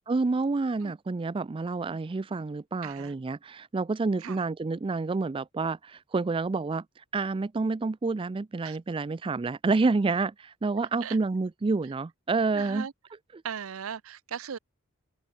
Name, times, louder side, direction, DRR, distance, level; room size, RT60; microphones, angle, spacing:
voice 1, 0.1-6.8 7.1-12.9 13.3-13.4, right 3 dB, 25° right, 0.4 m, -28 dB
voice 2, 2.8-3.1 4.2-4.4 8.6-8.8 10.7-11.2 12.5-12.9 13.4-14.6, right 7 dB, 80° right, 0.6 m, -38 dB
open air
head